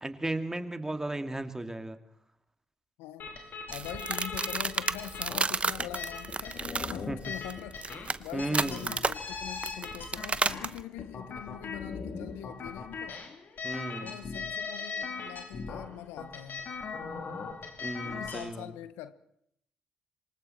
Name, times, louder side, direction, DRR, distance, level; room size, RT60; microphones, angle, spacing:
voice 1, 0.0-2.0 7.1-7.2 8.3-8.9 13.6-14.1 17.8-18.7, right 2 dB, 15° right, 2.3 m, -34 dB
voice 2, 3.0-13.2 14.0-16.7 18.0-19.1, left 13 dB, 75° left, 0.8 m, -43 dB
sound 1, 3.2-18.5, left 4 dB, 55° left, 3.2 m, -40 dB
sound 2, 3.7-10.8, right 4 dB, 30° right, 0.9 m, -32 dB
26.5 x 24.0 x 4.4 m
hypercardioid pair, 45°, 4 cm